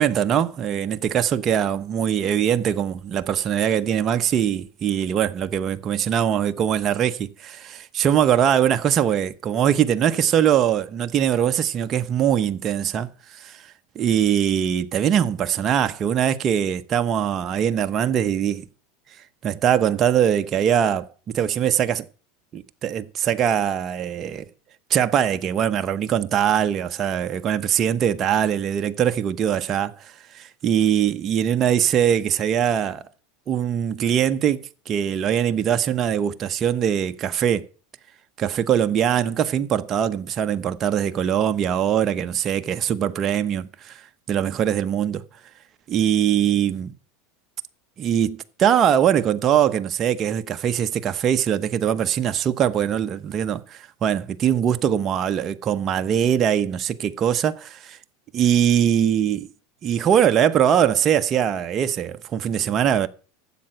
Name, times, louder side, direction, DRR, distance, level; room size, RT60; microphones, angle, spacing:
voice 1, 0.0-13.1 13.4-13.6 13.9-18.6 19.4-22.1 22.5-24.4 24.9-33.0 33.5-37.7 38.4-44.0 44.3-45.2 45.9-46.9 48.0-58.0 58.3-59.5 59.8-63.1, right 9 dB, 35° right, 0.9 m, -22 dB
12.0 x 7.7 x 5.9 m
supercardioid pair, 125°, 0 cm